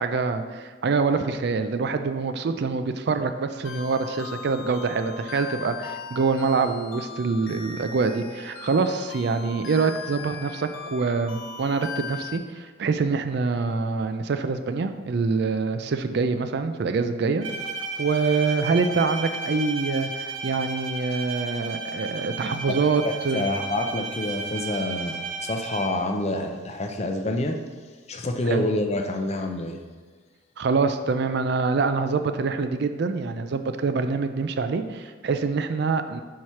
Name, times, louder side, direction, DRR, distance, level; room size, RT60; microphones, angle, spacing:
voice 1, 0.0-17.4 18.0-23.4 28.5-28.7 30.6-36.2, right 4 dB, 55° right, 9 dB, 0.4 m, -25 dB
sound 1, 3.6-12.4, left 5 dB, 85° left, 0.8 m, -39 dB
Bowed string instrument, 17.4-26.2, right 3 dB, 70° right, 0.8 m, -33 dB
voice 2, 23.0-27.6 28.1-29.8, left 1 dB, 30° left, 4 dB, 0.5 m, -27 dB
4.7 x 4.4 x 5.6 m, 1.4 s
head